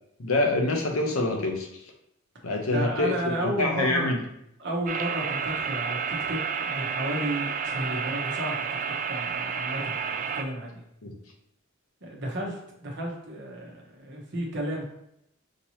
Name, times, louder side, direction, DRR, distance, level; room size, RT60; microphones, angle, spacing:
voice 1, 0.2-1.9 2.4-4.2 11.0-11.1, left 2 dB, 85° left, 1 dB, 0.8 m, -26 dB
voice 2, 2.7-4.1 4.6-8.7 9.1-10.8 12.0-14.9, right 1 dB, 55° right, -1 dB, 1.0 m, -33 dB
sound 1, 4.9-10.4, right 6 dB, 40° right, 0.4 m, -30 dB
5.1 x 2.9 x 2.8 m, 0.77 s
head